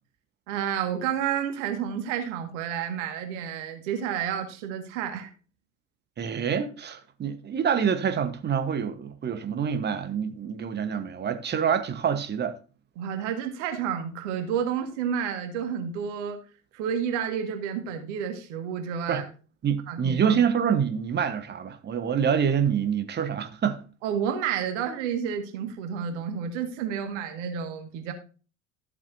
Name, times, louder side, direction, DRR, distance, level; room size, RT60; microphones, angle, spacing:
voice 1, 0.5-5.3 13.0-16.4 16.7-19.2 19.9-20.4 24.0-28.1, right 8 dB, 60° right, 1.9 m, -30 dB
voice 2, 6.2-12.5 19.1-19.2 19.6-23.8, right 7 dB, 25° right, 1.2 m, -26 dB
13.0 x 7.4 x 2.7 m
figure-of-eight pair, 70°, 41 cm